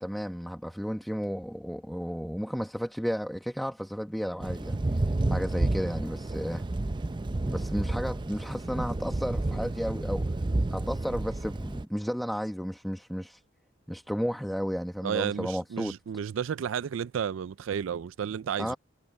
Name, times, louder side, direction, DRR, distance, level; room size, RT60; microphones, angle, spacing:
voice 1, 0.0-6.6 7.5-10.3 10.7-13.4 13.9-15.9 18.6-18.8, equal, ahead, 1.2 m, -33 dB
Thunder / Rain, 4.4-11.8, right 2 dB, 25° right, 0.5 m, -30 dB
voice 2, 15.0-18.7, right 8 dB, 80° right, 0.4 m, -32 dB
head